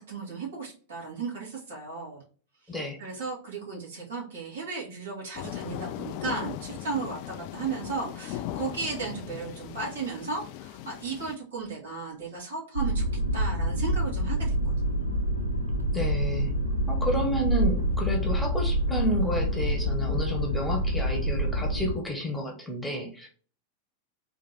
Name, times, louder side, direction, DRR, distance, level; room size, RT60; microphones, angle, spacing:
voice 1, 0.1-2.2 2.6-13.0 13.3-15.0, right 4 dB, 65° right, -4 dB, 2.4 m, -35 dB
voice 2, 2.7-3.0 15.9-16.5 16.9-23.3, equal, 5° left, 0 dB, 1.1 m, -30 dB
sound 1, 5.3-11.4, left 12 dB, 45° left, 0.3 m, -38 dB
sound 2, 12.8-22.0, equal, 80° left, 0.8 m, -27 dB
4.3 x 2.8 x 4.1 m, 0.41 s
figure-of-eight pair, 90°, 0 cm